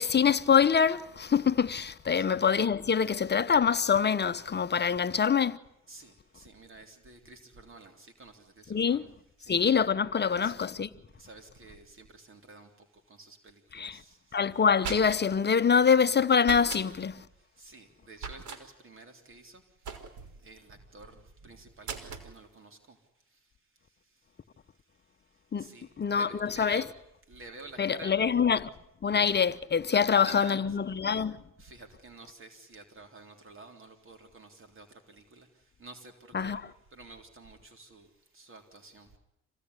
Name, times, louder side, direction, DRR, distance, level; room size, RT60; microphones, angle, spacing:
voice 1, 0.0-5.6 8.7-9.0 9.5-10.9 13.7-14.0 14.3-17.2 25.5-25.7 26.0-26.8 27.8-28.7 29.0-31.4 36.3-36.6, left 6 dB, 35° left, 1.0 m, -25 dB
voice 2, 5.9-9.1 9.4-9.6 10.3-10.5 11.2-12.7 13.1-14.2 17.6-19.6 20.4-23.0 25.6-26.9 27.3-28.1 29.8-30.8 31.6-35.5 35.8-36.1 36.4-36.6 36.9-38.1 38.3-39.1, right 3 dB, 45° right, 3.6 m, -50 dB
sound 1, 14.5-15.4 16.4-16.9 18.2-18.6 19.8-20.4 21.8-22.3, right 5 dB, 75° right, 4.2 m, -39 dB
26.5 x 17.0 x 9.8 m
cardioid pair, 90°, 30 cm